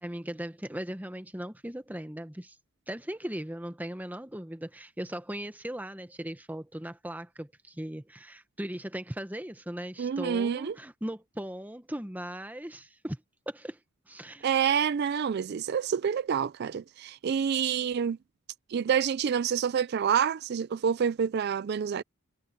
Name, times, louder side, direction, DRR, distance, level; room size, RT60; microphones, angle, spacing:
voice 1, 0.0-2.6 2.9-13.2 13.5-13.8 14.1-14.5, right 1 dB, 10° right, 1.0 m, -38 dB
voice 2, 10.0-10.7 14.4-18.2 18.7-22.0, right 7 dB, 50° right, 0.3 m, -27 dB
head